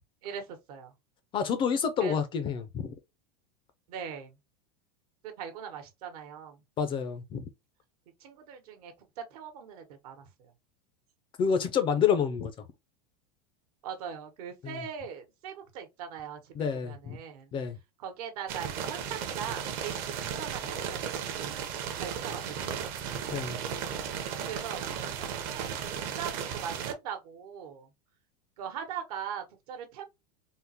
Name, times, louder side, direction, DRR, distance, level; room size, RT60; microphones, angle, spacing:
voice 1, 0.2-0.9 2.0-2.2 3.9-4.4 5.2-6.6 8.2-10.5 13.8-17.5 18.0-21.7 22.0-22.9 24.5-25.9 26.1-27.9 28.6-30.0, right 7 dB, 70° right, 1.0 m, -41 dB
voice 2, 1.3-2.9 6.8-7.5 11.4-12.5 14.6-14.8 16.6-17.2 17.5-17.8 23.3-23.6, left 7 dB, 25° left, 0.4 m, -28 dB
sound 1, 18.5-26.9, right 8 dB, 50° right, 0.7 m, -35 dB
3.6 x 2.0 x 2.7 m
supercardioid pair, 135°, 20 cm